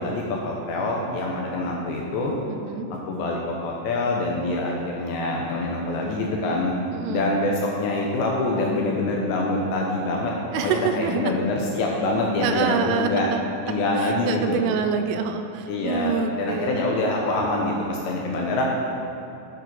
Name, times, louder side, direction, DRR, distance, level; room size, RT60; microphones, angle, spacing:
voice 1, 0.0-2.3 3.1-6.7 7.1-10.4 10.6-13.3 13.7-14.6 15.7-18.6, left 2 dB, 75° left, -1 dB, 2.7 m, -25 dB
voice 2, 2.5-2.9 6.9-7.3 10.5-11.3 12.4-13.6 14.0-16.9, right 6 dB, 85° right, 7 dB, 3.1 m, -27 dB
8.4 x 7.8 x 5.9 m, 2.8 s
omnidirectional pair, 5.8 m